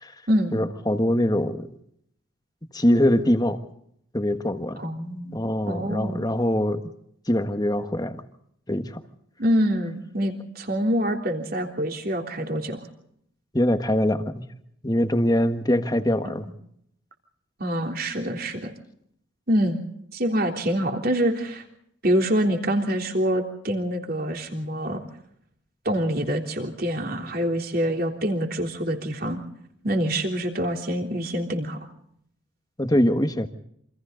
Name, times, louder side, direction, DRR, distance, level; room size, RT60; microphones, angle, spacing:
voice 1, 0.5-1.7 2.7-3.6 4.1-4.8 5.3-6.8 7.3-8.2 8.7-9.0 13.5-14.4 14.8-16.5 32.8-33.5, left 1 dB, 20° left, 8 dB, 1.4 m, -23 dB
voice 2, 4.8-6.2 9.4-12.8 16.2-16.3 17.6-18.7 19.5-19.8 20.1-21.6 22.0-25.0 25.8-29.4 29.8-31.8, equal, 45° right, 3 dB, 3.4 m, -25 dB
28.0 x 26.0 x 3.9 m, 0.71 s
head